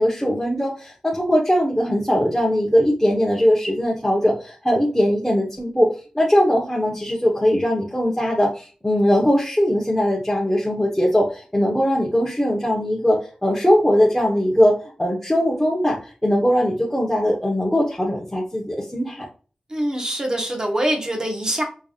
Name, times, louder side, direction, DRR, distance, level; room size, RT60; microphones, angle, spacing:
voice 1, 0.0-19.2, equal, 10° left, -4 dB, 1.1 m, -20 dB
voice 2, 19.7-21.6, right 1 dB, 30° right, 1 dB, 1.4 m, -24 dB
5.3 x 3.4 x 2.5 m, 0.36 s
wide cardioid pair, 105°, 2 cm